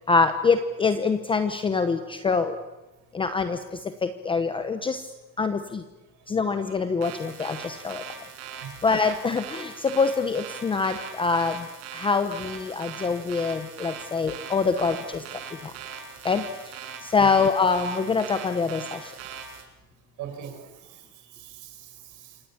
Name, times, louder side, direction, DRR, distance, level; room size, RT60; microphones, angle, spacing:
voice 1, 0.1-2.6 3.1-3.6 4.0-5.0 5.4-5.8 6.3-8.0 8.8-11.6 11.9-15.0 16.2-16.4 17.1-18.8, left 4 dB, 10° left, 9 dB, 0.8 m, -24 dB
sound 1, 7.0-19.6, right 7 dB, 65° right, 6.8 m, -40 dB
voice 2, 20.2-22.4, right 9 dB, 40° right, 6 dB, 5.6 m, -42 dB
27.5 x 24.0 x 8.6 m, 1.0 s
cardioid pair, 165°, 45 cm